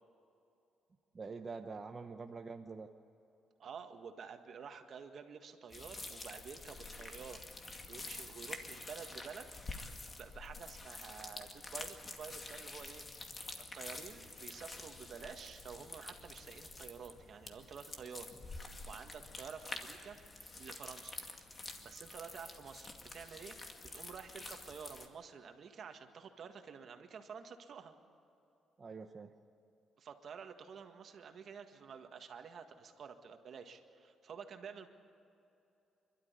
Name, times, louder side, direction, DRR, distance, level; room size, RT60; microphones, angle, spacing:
voice 1, 1.1-2.9 28.8-29.3, right 4 dB, 30° right, 4 dB, 0.9 m, -45 dB
voice 2, 3.6-7.4 7.9-9.5 10.1-13.0 13.7-20.2 20.6-21.2 21.8-27.9 30.0-34.9, right 6 dB, 55° right, 6 dB, 1.8 m, -50 dB
sound 1, 5.7-25.1, left 3 dB, 30° left, 2.2 m, -48 dB
27.5 x 12.5 x 9.6 m, 2.8 s
cardioid pair, 105°, 0 cm